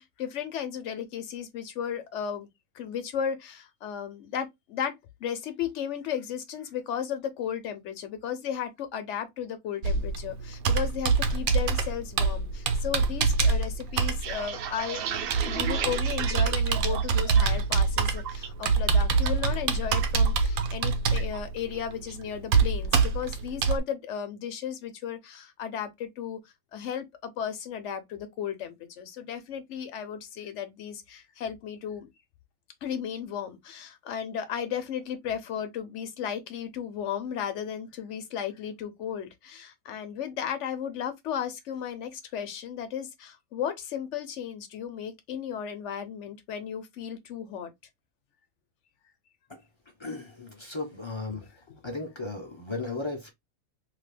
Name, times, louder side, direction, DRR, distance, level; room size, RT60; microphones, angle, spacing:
voice 1, 0.0-2.5 2.7-15.1 15.4-26.4 26.7-32.1 32.8-47.7 51.3-51.4 51.7-51.8, left 8 dB, 65° left, 0.9 m, -35 dB
Computer keyboard, 9.8-23.8, right 5 dB, 85° right, 1.1 m, -25 dB
sound 1, 14.0-17.6 18.0-18.5 18.9-19.3 19.6-20.8 21.2-21.4 21.7-22.2, right 7 dB, 65° right, 0.5 m, -36 dB
voice 2, 50.0-51.5 51.8-53.3, left 3 dB, 35° left, 0.4 m, -35 dB
2.8 x 2.4 x 3.3 m
omnidirectional pair, 1.5 m